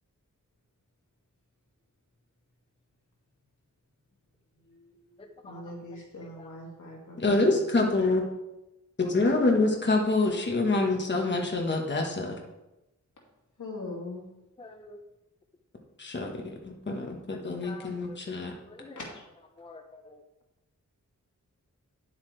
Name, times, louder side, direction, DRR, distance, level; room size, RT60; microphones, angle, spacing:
voice 1, 4.7-7.6 13.6-14.3 19.0-19.2, left 2 dB, 75° left, -2 dB, 2.6 m, -42 dB
voice 2, 5.2-5.6 6.4-6.5 14.6-15.0 17.3-18.2 18.7-19.0 19.6-20.1, left 2 dB, 20° left, 5 dB, 0.6 m, -48 dB
voice 3, 7.2-8.2 9.0-12.4 16.0-18.5, left 2 dB, 35° left, 1 dB, 1.3 m, -26 dB
9.8 x 8.2 x 3.3 m, 0.95 s
wide cardioid pair, 100°, 30 cm